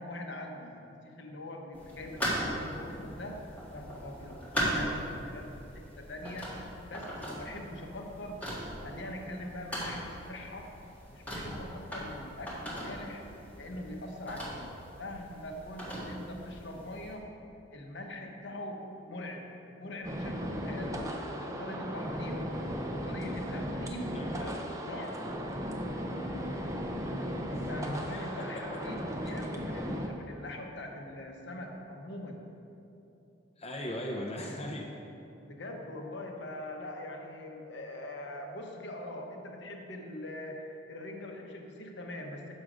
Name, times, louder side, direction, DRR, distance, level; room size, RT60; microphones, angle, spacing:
voice 1, 0.0-3.4 3.7-6.6 6.9-8.5 8.8-10.7 11.1-13.2 13.6-14.7 15.0-17.3 17.7-19.5 19.8-22.6 22.9-25.2 27.5-32.4 35.4-42.5, left 1 dB, 65° left, 2 dB, 0.8 m, -42 dB
sound 1, 1.7-17.1, equal, 10° left, 1.5 m, -39 dB
sound 2, 20.0-30.1, equal, 15° right, 0.6 m, -36 dB
voice 2, 28.0-28.6 33.6-34.8, left 1 dB, 30° left, -1 dB, 0.5 m, -38 dB
6.3 x 6.2 x 4.9 m, 2.9 s
head